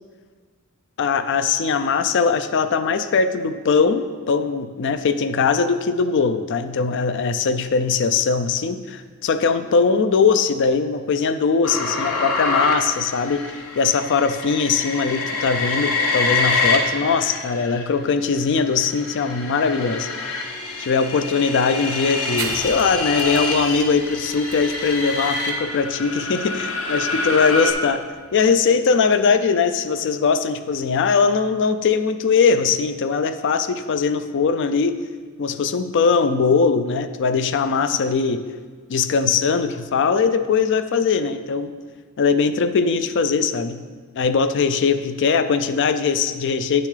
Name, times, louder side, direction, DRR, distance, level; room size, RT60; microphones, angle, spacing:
voice 1, 1.0-13.4 13.8-20.1 20.8-28.0 28.3-35.0 35.4-38.4 38.9-41.7 42.2-43.8 44.1-46.9, left 5 dB, 55° left, 11 dB, 0.4 m, -20 dB
sound 1, 11.6-17.8 18.4-27.7, left 3 dB, 70° left, 1.0 m, -26 dB
sound 2, 22.4-29.5, right 5 dB, 65° right, 0.7 m, -39 dB
9.3 x 6.8 x 3.3 m, 1.5 s
head